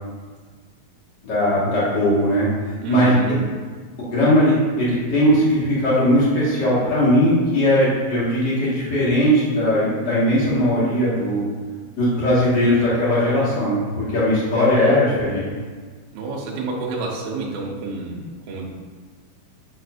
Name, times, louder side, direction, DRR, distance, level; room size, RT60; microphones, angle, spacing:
voice 1, 1.2-2.5 2.9-3.1 4.1-11.4 12.0-15.5, equal, 45° left, -9 dB, 1.4 m, -19 dB
voice 2, 2.8-3.5 16.1-18.6, right 3 dB, 75° right, -2 dB, 2.8 m, -29 dB
9.1 x 4.7 x 2.6 m, 1.5 s
omnidirectional pair, 4.9 m